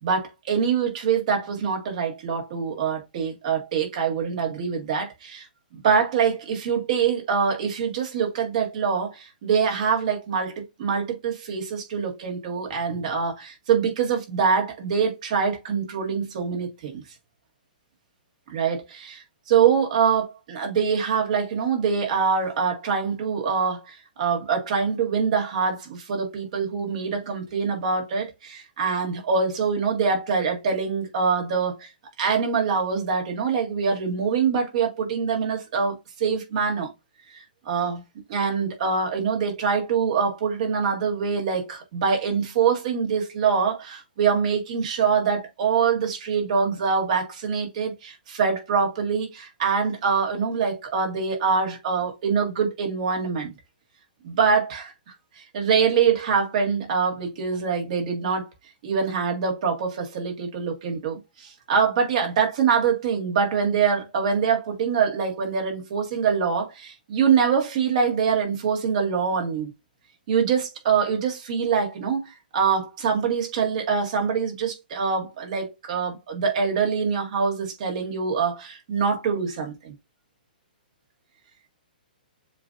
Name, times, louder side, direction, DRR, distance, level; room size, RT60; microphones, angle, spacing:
voice 1, 0.0-5.5 5.7-17.0 18.5-31.9 32.2-36.9 37.3-38.0 38.3-53.5 54.2-54.9 55.5-58.5 58.8-69.7 70.3-79.9, right 6 dB, 45° right, 1.8 m, -24 dB
7.3 x 2.7 x 2.5 m
hypercardioid pair, 160°, 5 cm